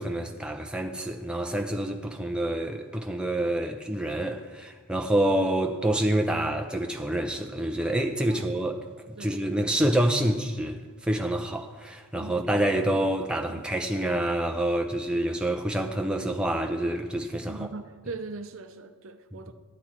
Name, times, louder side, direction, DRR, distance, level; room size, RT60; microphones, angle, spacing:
voice 1, 0.0-8.8 9.1-17.7, right 1 dB, 5° right, 0.6 m, -27 dB
voice 2, 12.1-13.0 13.5-13.7 17.5-19.5, right 3 dB, 65° right, 0.7 m, -41 dB
13.0 x 10.0 x 4.4 m
head